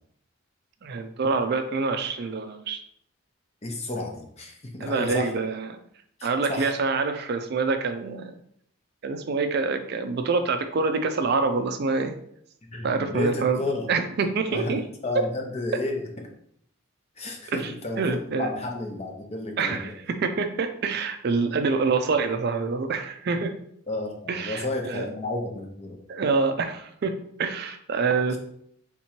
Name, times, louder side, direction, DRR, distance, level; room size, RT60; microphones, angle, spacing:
voice 1, 0.8-2.8 4.8-5.7 6.2-8.3 9.0-12.1 12.8-13.6 13.9-14.8 17.5-18.5 19.6-23.5 24.3-25.0 26.1-28.4, right 4 dB, 50° right, 7 dB, 0.4 m, -26 dB
voice 2, 3.6-5.3 6.2-6.7 12.7-13.9 14.5-16.0 17.2-19.9 23.9-26.0 28.3-28.4, left 2 dB, 30° left, 2 dB, 0.6 m, -32 dB
3.7 x 3.0 x 4.3 m, 0.69 s
head